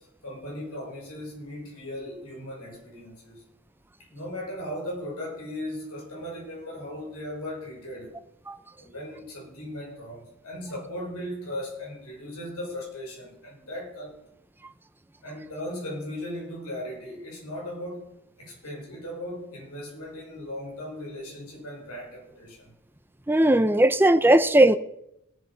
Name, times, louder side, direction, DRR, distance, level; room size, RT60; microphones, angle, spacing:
voice 1, 0.0-3.4 4.0-8.1 8.8-14.1 15.2-18.1 18.4-22.7, left 1 dB, 90° left, 6.0 m, -37 dB
voice 2, 23.3-24.8, right 1 dB, 10° right, 0.5 m, -18 dB
18.0 x 8.0 x 5.6 m
head